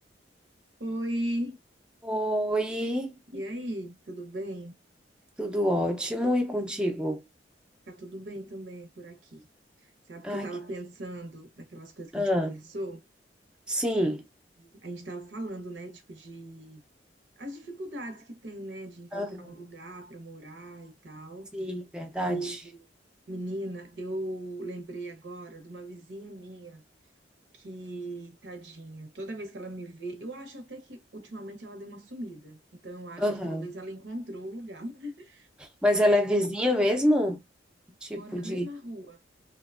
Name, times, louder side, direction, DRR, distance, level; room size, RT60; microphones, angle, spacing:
voice 1, 0.8-1.6 3.3-4.7 7.9-9.5 9.8-13.0 14.6-16.8 17.4-21.5 22.3-22.8 23.3-26.8 27.5-35.5 35.9-36.1 38.1-39.2, right 1 dB, 75° right, 0.8 m, -39 dB
voice 2, 2.0-3.2 5.4-7.2 10.2-10.5 12.1-12.5 13.7-14.2 19.1-19.5 21.5-22.6 33.2-33.7 35.6-37.4 38.0-38.7, equal, 5° right, 0.4 m, -27 dB
2.8 x 2.2 x 2.3 m
head